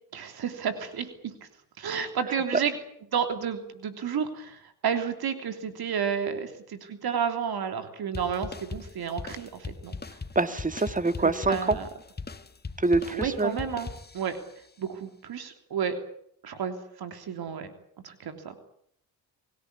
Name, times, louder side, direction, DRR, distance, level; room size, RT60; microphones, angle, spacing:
voice 1, 0.1-1.3 1.8-2.8 3.1-10.0 11.2-11.9 13.1-13.9 14.1-14.4 14.8-16.0 16.4-17.7 18.0-18.5, right 7 dB, 65° right, 8 dB, 3.3 m, -31 dB
sound 1, 8.1-14.5, left 4 dB, 25° left, 1.7 m, -40 dB
voice 2, 10.4-11.8 12.8-13.6, right 3 dB, 20° right, 12 dB, 1.9 m, -25 dB
24.5 x 17.0 x 9.7 m, 0.69 s
supercardioid pair, 70°, 40 cm